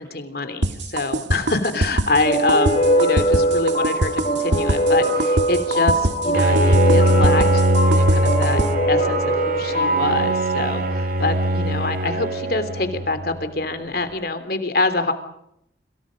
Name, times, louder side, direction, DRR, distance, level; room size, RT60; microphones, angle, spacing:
voice 1, 0.0-8.6 8.9-15.1, left 2 dB, 55° left, 10 dB, 3.2 m, -25 dB
sound 1, 0.6-8.7, right 1 dB, 90° right, 2.0 m, -23 dB
sound 2, 2.2-11.5, right 1 dB, 35° left, 6.4 m, -22 dB
Bowed string instrument, 6.3-13.4, right 1 dB, 50° right, 2.1 m, -21 dB
28.5 x 26.5 x 5.3 m, 0.77 s
head